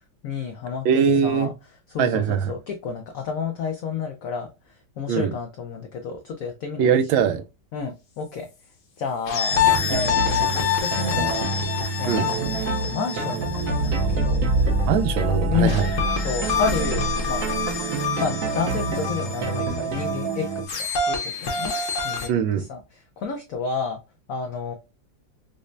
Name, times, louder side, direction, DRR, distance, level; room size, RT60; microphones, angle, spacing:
voice 1, 0.2-0.8 1.2-1.5 1.9-4.5 5.0-6.9 7.7-8.5 9.0-9.6 9.9-11.5 12.0-14.4 15.5-15.8 16.2-17.5 18.2-21.7 22.0-24.0 24.3-24.7, left 5 dB, 80° left, 0.7 m, -30 dB
voice 2, 0.8-1.5 2.0-2.5 5.1-5.3 6.8-7.4 12.1-12.3 14.9-15.9 22.3-22.6, right 7 dB, 85° right, 1.4 m, -21 dB
sound 1, 9.3-14.8 15.7-22.3, left 7 dB, 55° left, 0.9 m, -27 dB
sound 2, 9.5-20.7, right 3 dB, 60° right, 0.9 m, -26 dB
5.2 x 2.1 x 2.4 m
omnidirectional pair, 2.1 m